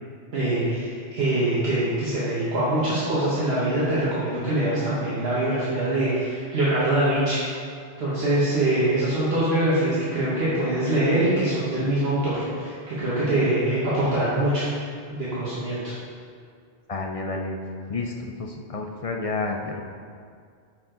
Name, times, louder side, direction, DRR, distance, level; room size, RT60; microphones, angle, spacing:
voice 1, 0.3-7.4 8.0-14.6 15.1-15.9, right 1 dB, 65° right, -9 dB, 1.6 m, -23 dB
voice 2, 16.9-17.6 17.9-19.8, left 3 dB, 50° left, 2 dB, 0.4 m, -30 dB
9.3 x 4.8 x 3.8 m, 2.2 s
omnidirectional pair, 1.1 m